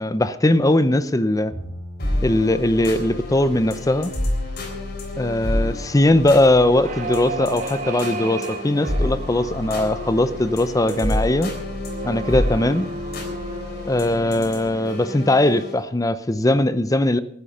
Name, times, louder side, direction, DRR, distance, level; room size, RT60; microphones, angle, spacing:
voice 1, 0.0-1.5 2.2-4.1 5.2-11.5 12.0-12.9 13.9-17.2, left 1 dB, 20° left, 14 dB, 0.6 m, -20 dB
Bowed string instrument, 1.5-4.9, equal, 5° right, 4.6 m, -42 dB
sound 1, 2.0-15.8, left 1 dB, 55° left, 3.7 m, -29 dB
sound 2, 6.8-15.6, right 3 dB, 40° right, 2.5 m, -34 dB
15.0 x 11.5 x 5.4 m, 0.71 s
head